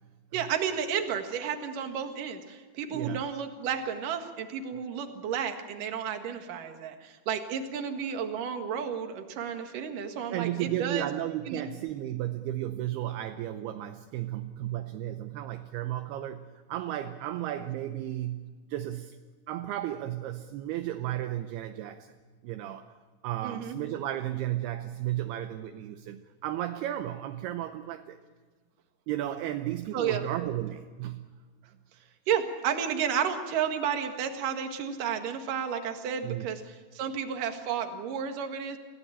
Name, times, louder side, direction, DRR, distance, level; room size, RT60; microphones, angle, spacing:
voice 1, 0.3-11.1 11.5-11.7 23.4-23.8 29.9-30.2 32.3-38.8, right 7 dB, 55° right, 6 dB, 2.9 m, -32 dB
voice 2, 2.9-3.2 10.3-19.1 19.5-22.1 22.4-22.9 23.2-28.2 29.1-31.3 36.2-36.6, right 13 dB, 75° right, 8 dB, 2.6 m, -34 dB
28.5 x 17.0 x 8.8 m, 1.5 s
omnidirectional pair, 5.1 m